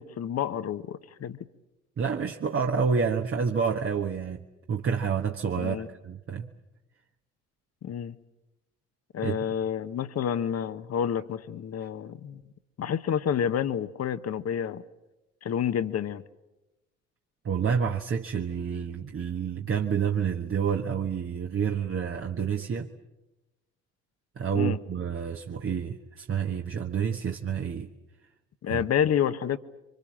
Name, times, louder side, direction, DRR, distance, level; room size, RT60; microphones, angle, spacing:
voice 1, 0.0-1.4 5.6-5.9 7.8-8.2 9.1-12.4 12.8-14.8 15.4-16.2 24.5-24.8 28.6-29.6, left 8 dB, 50° left, 13 dB, 1.2 m, -29 dB
voice 2, 2.0-6.5 9.2-9.4 17.4-22.9 24.4-27.9 28.7-28.8, right 6 dB, 40° right, 3 dB, 1.4 m, -29 dB
28.0 x 24.5 x 7.5 m, 0.97 s
hypercardioid pair, 55°, 32 cm